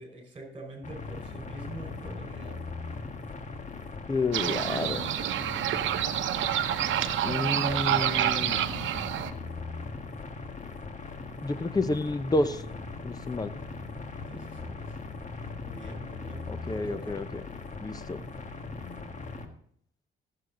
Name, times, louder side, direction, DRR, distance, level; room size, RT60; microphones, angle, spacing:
voice 1, 0.0-2.6 14.3-14.9 15.6-17.2, right 2 dB, 25° right, 3 dB, 4.8 m, -45 dB
sound 1, 0.8-19.5, left 4 dB, 35° left, 1.6 m, -39 dB
voice 2, 4.1-5.1 7.2-8.6 11.4-12.6 13.0-13.5 16.5-17.3 17.8-18.2, left 2 dB, 20° left, 12 dB, 0.8 m, -30 dB
sound 2, 4.3-9.3, right 11 dB, 75° right, 0.8 m, -28 dB
15.0 x 7.7 x 3.8 m, 0.64 s
cardioid pair, 90°, 20 cm